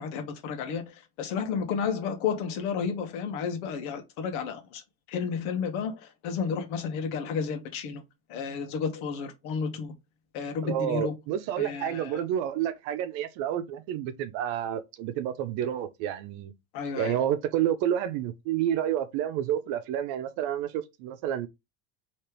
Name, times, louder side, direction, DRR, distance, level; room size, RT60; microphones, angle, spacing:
voice 1, 0.0-4.8 5.1-8.0 8.3-9.9 10.3-11.1 11.6-12.2 16.7-17.2, left 6 dB, 75° left, 1.4 m, -32 dB
voice 2, 10.6-16.5 17.0-21.5, right 10 dB, 65° right, 0.8 m, -29 dB
3.3 x 3.2 x 4.5 m
supercardioid pair, 130°, 49 cm